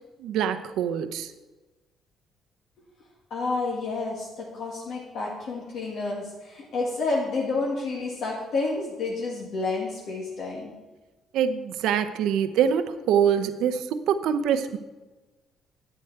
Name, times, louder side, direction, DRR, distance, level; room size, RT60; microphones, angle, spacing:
voice 1, 0.2-1.3 11.3-14.8, right 8 dB, 75° right, 9 dB, 0.8 m, -24 dB
voice 2, 3.3-10.8, left 3 dB, 50° left, -3 dB, 1.7 m, -30 dB
11.0 x 9.2 x 4.6 m, 1.1 s
cardioid pair, 175°, 0 cm